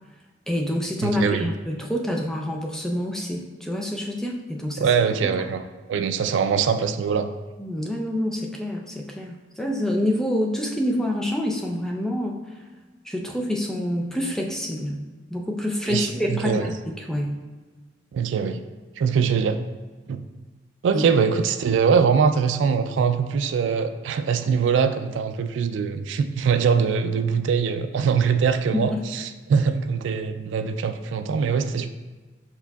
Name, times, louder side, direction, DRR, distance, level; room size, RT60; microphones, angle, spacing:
voice 1, 0.5-4.9 5.2-5.3 7.6-12.4 13.0-15.0 15.3-17.3 20.9-21.0 28.7-29.0, left 1 dB, 5° left, 0 dB, 0.4 m, -27 dB
voice 2, 1.0-1.5 4.8-5.6 5.9-7.3 15.9-16.7 18.1-18.6 19.0-19.6 20.1-20.2 20.8-29.2 29.5-31.9, right 6 dB, 80° right, 9 dB, 0.3 m, -22 dB
5.1 x 4.5 x 2.3 m, 1.3 s
head